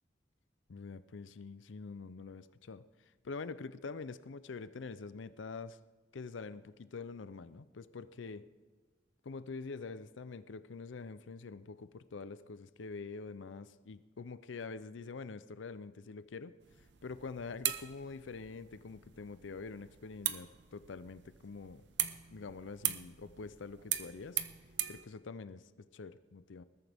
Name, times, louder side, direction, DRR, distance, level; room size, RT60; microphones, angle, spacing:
voice 1, 0.7-5.8 6.1-8.5 9.2-21.8 22.3-24.4 24.9-26.6, left 4 dB, 85° left, 14 dB, 0.5 m, -45 dB
sound 1, 16.6-25.0, right 12 dB, 65° right, 0.8 m, -40 dB
20.5 x 13.5 x 3.5 m, 1.4 s
head